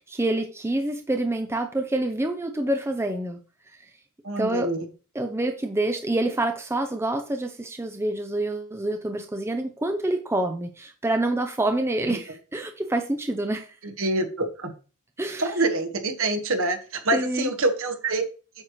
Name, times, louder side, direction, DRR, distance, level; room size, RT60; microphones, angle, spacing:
voice 1, 0.0-3.4 3.7-3.9 4.4-4.7 5.1-13.8 15.2-15.7 17.1-17.5, right 1 dB, 10° right, 6 dB, 0.5 m, -27 dB
voice 2, 4.2-4.8 14.0-14.7 15.4-18.2, right 2 dB, 60° right, 4 dB, 1.4 m, -26 dB
8.6 x 6.5 x 3.1 m, 0.35 s
head